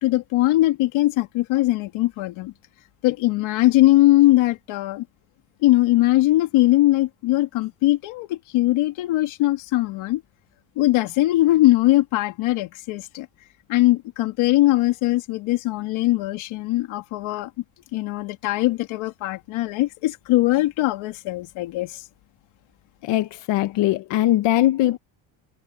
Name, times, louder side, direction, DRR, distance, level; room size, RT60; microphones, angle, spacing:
voice 1, 0.0-2.5 3.0-5.0 5.6-10.2 10.8-13.3 13.7-17.5 17.9-22.0, left 17 dB, 80° left, 2.2 m, -20 dB
voice 2, 23.0-25.0, left 14 dB, 65° left, 0.9 m, -20 dB
cardioid pair, 160°, 47 cm